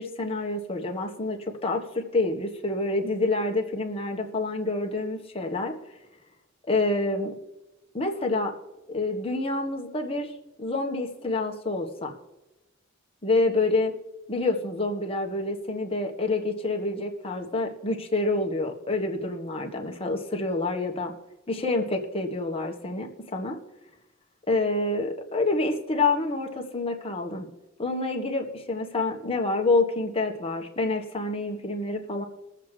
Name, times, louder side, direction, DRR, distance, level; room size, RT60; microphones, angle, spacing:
voice 1, 0.0-5.7 6.7-7.3 7.9-8.5 8.9-10.3 10.6-12.1 13.2-13.9 14.3-21.1 21.5-23.6 24.5-27.5 27.8-32.2, left 2 dB, 25° left, 2 dB, 1.4 m, -27 dB
22.0 x 7.4 x 3.3 m, 1.0 s
head